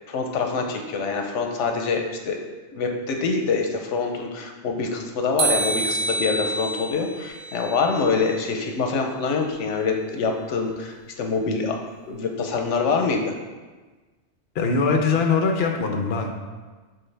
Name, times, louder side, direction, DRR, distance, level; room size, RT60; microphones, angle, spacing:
voice 1, 0.1-2.4 2.7-11.8 12.1-13.3, left 4 dB, 85° left, 3 dB, 1.0 m, -25 dB
sound 1, 5.4-8.5, right 2 dB, 65° right, 0.9 m, -28 dB
voice 2, 14.5-16.3, left 4 dB, 60° left, 3 dB, 0.9 m, -22 dB
7.7 x 4.0 x 3.3 m, 1.3 s
omnidirectional pair, 1.2 m